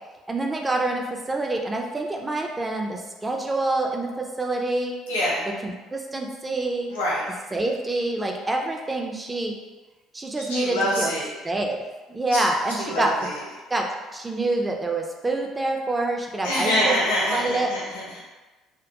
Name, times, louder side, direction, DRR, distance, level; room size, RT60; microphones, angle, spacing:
voice 1, 0.3-5.0 5.6-6.9 7.5-9.5 10.1-11.1 11.4-11.8 12.1-13.1 13.7-13.9 14.1-16.9 17.3-17.7, right 2 dB, 20° right, 1 dB, 0.4 m, -26 dB
voice 2, 5.1-5.4 6.9-7.2 10.5-11.3 12.3-12.4 12.9-13.4 16.4-18.2, equal, 80° left, -6 dB, 0.6 m, -25 dB
2.2 x 2.2 x 2.8 m, 1.2 s
hypercardioid pair, 55°, 0 cm